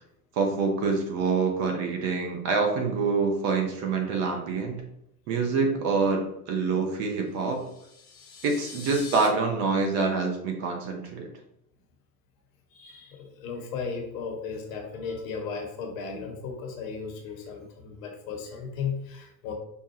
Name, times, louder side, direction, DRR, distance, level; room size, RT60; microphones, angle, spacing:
voice 1, 0.4-4.8 5.3-7.7 8.4-11.3, right 4 dB, 35° right, 2 dB, 0.7 m, -26 dB
sound 1, 7.4-9.3, left 5 dB, 10° left, 0.4 m, -44 dB
voice 2, 12.7-19.5, left 5 dB, 55° left, 3 dB, 1.0 m, -35 dB
5.2 x 2.2 x 3.0 m, 0.76 s
figure-of-eight pair, 90°, 49 cm